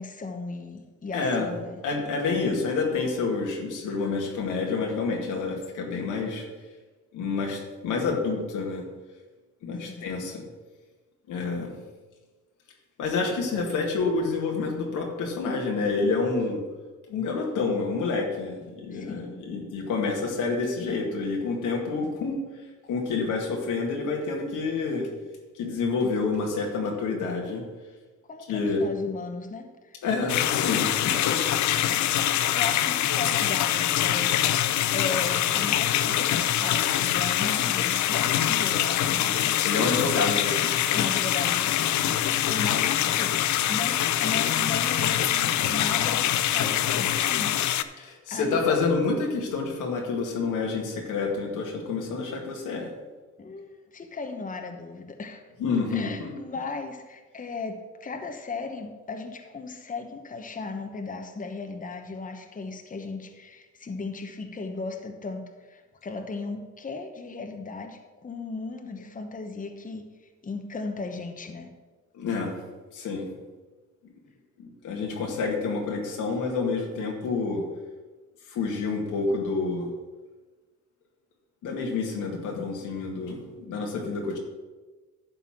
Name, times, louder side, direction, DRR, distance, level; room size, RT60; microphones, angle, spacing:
voice 1, 0.0-1.8 9.9-10.1 18.9-19.4 28.3-30.0 31.7-39.4 40.9-43.4 43.7-48.8 53.4-55.4 55.9-70.0 70.4-71.7, left 3 dB, 25° left, 5 dB, 1.0 m, -36 dB
voice 2, 1.1-1.5 1.8-6.4 7.1-8.8 9.6-10.4 11.3-11.7 13.0-16.6 17.1-22.4 22.9-25.1 25.5-27.6 28.5-28.9 30.0-31.4 31.7-32.1 39.6-40.8 48.0-52.9 55.6-56.3 72.2-72.5 72.9-73.3 74.8-77.6 78.5-79.9 81.6-84.4, left 4 dB, 85° left, 1 dB, 2.0 m, -28 dB
sound 1, 30.3-47.8, left 11 dB, 70° left, 0.6 m, -24 dB
11.0 x 4.2 x 7.3 m, 1.3 s
cardioid pair, 90°, 30 cm